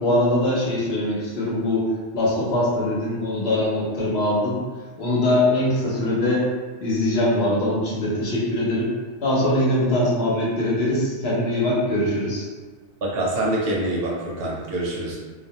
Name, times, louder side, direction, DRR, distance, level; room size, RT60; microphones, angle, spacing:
voice 1, 0.0-1.9 2.1-4.6 5.0-6.4 6.8-8.9 9.2-12.5, left 1 dB, 65° left, -5 dB, 0.9 m, -22 dB
voice 2, 13.0-15.2, right 1 dB, 65° right, -3 dB, 0.7 m, -25 dB
2.3 x 2.1 x 2.7 m, 1.4 s
omnidirectional pair, 1.2 m